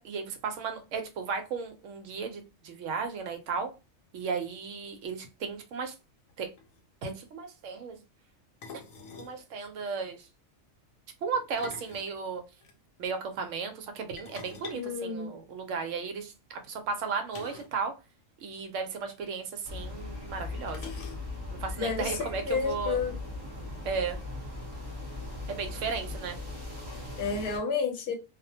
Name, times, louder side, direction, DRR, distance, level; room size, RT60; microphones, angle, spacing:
voice 1, 0.0-3.7 4.1-5.9 6.4-6.5 7.0-8.0 9.2-10.3 11.2-12.4 13.0-17.9 18.4-20.9 21.6-23.0 23.8-24.2 25.5-26.4, right 5 dB, 75° right, 0.9 m, -35 dB
sound 1, 6.3-6.4 6.6-6.8 8.6-9.4 11.3-12.7 14.2-15.8 17.3-17.8 18.1-18.2 18.5-18.6 19.7-19.8 20.7-21.5, left 5 dB, 85° left, 1.0 m, -46 dB
voice 2, 14.7-15.3 21.8-22.1 22.5-23.2 27.2-28.1, left 5 dB, 55° left, 0.9 m, -30 dB
sound 2, 19.6-27.6, left 2 dB, 20° right, 0.8 m, -39 dB
2.4 x 2.1 x 2.7 m
omnidirectional pair, 1.4 m